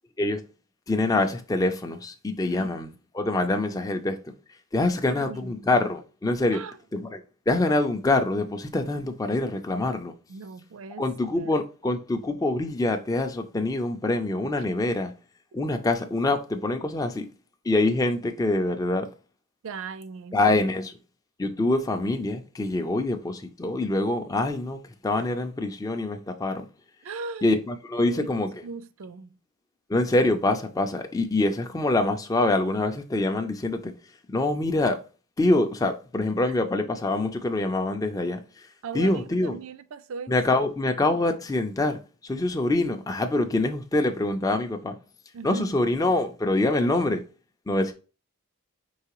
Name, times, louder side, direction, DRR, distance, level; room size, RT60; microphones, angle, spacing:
voice 1, 0.9-4.3 4.7-6.6 6.9-7.2 7.5-10.1 11.0-15.1 15.5-17.2 17.6-19.1 20.3-20.9 21.4-26.7 27.4-28.5 29.9-33.9 34.3-35.0 35.4-38.4 38.9-39.6 40.3-45.0 45.4-47.2 47.7-47.9, left 2 dB, 15° left, 0.4 m, -25 dB
voice 2, 4.9-5.7 6.5-6.8 10.3-11.5 15.6-15.7 19.6-20.7 27.0-27.5 28.0-28.4 28.6-29.4 38.8-40.3 45.3-45.8, right 4 dB, 60° right, 0.4 m, -39 dB
4.7 x 3.3 x 2.9 m
head